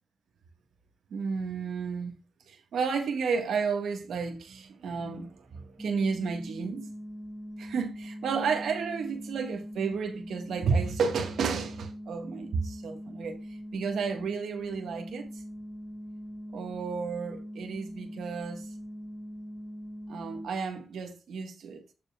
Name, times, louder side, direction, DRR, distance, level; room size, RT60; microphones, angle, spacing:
voice 1, 1.1-2.1 2.5-6.9 7.6-15.3 16.5-18.6 20.1-21.8, right 5 dB, 90° right, 1.5 m, -32 dB
sound 1, 5.8-20.5, equal, 5° right, 1.1 m, -42 dB
14.0 x 5.4 x 2.4 m
cardioid pair, 95°, 0 cm